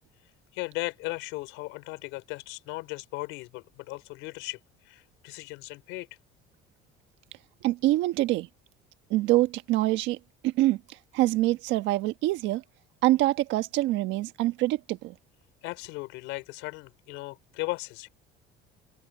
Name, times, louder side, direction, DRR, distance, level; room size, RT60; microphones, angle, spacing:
voice 1, 0.5-4.6 4.8-6.1 15.6-18.1, left 22 dB, 80° left, 4.1 m, -37 dB
voice 2, 7.6-8.5 9.1-10.2 10.4-10.8 11.1-12.6 13.0-15.1, right 17 dB, 65° right, 1.4 m, -25 dB
cardioid pair, 170°, 20 cm